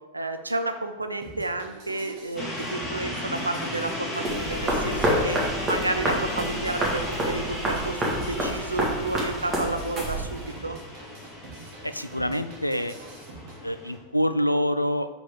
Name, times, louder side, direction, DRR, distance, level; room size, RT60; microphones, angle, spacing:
voice 1, 0.1-5.4 5.7-10.8, right 2 dB, 80° right, 8 dB, 0.6 m, -31 dB
sound 1, 1.2-13.6, right 3 dB, 45° right, 1.4 m, -45 dB
sound 2, 2.4-14.0, left 1 dB, 15° left, 2.2 m, -35 dB
sound 3, 4.2-10.5, right 1 dB, 20° right, 1.7 m, -28 dB
voice 2, 11.8-12.9 13.6-15.1, equal, 90° left, 10 dB, 0.3 m, -26 dB
5.2 x 4.8 x 5.0 m, 1.2 s
figure-of-eight pair, 90°, 0 cm